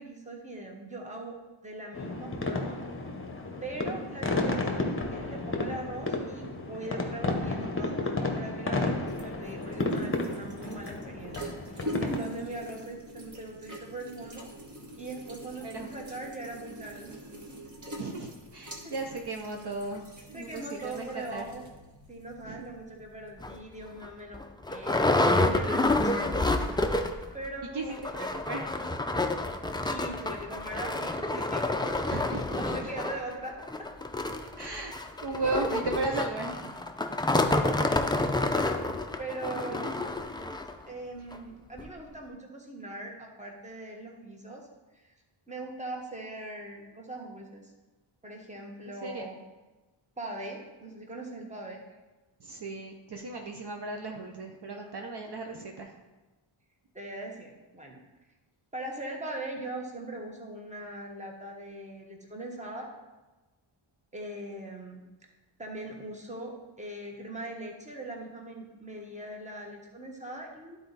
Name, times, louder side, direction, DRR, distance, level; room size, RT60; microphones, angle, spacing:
voice 1, 0.0-1.4 1.6-2.8 3.6-14.5 15.0-17.2 18.8-18.9 20.3-21.6 22.1-24.4 24.7-25.1 25.5-26.6 27.3-28.0 29.8-31.6 32.6-33.6 37.4-38.7 39.2-40.1 40.9-44.7 44.9-45.1 45.5-47.7 48.2-49.4 50.2-51.8 56.9-58.0 58.7-62.9 64.1-65.0 65.6-70.8, right 2 dB, 15° right, 0 dB, 1.3 m, -40 dB
sound 1, 1.9-12.2, left 2 dB, 25° left, 1.0 m, -32 dB
sound 2, 8.4-23.5, equal, 35° right, 1.4 m, -45 dB
voice 2, 18.0-21.5 22.4-22.7 27.7-28.7 32.1-32.9 34.6-34.9 35.2-36.8 37.8-38.0 38.8-38.9 39.7-39.9 49.0-49.3 52.4-56.0, right 2 dB, 55° right, 2 dB, 0.8 m, -36 dB
sound 3, 23.4-23.5 24.0-24.1 24.3-27.3 27.6-27.7 27.9-40.7 41.3-41.4 41.8-41.9, left 2 dB, 10° left, 0.4 m, -28 dB
11.5 x 4.2 x 4.0 m, 1.1 s
wide cardioid pair, 120°, 50 cm